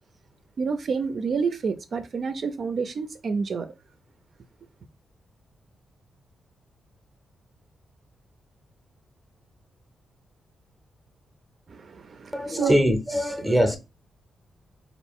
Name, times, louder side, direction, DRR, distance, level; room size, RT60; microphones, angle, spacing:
voice 1, 0.6-3.7 11.7-12.7, right 5 dB, 45° right, 0.4 m, -28 dB
voice 2, 12.3-13.8, equal, 5° left, 0.6 m, -22 dB
4.2 x 2.4 x 3.5 m
wide cardioid pair, 170°, 0 cm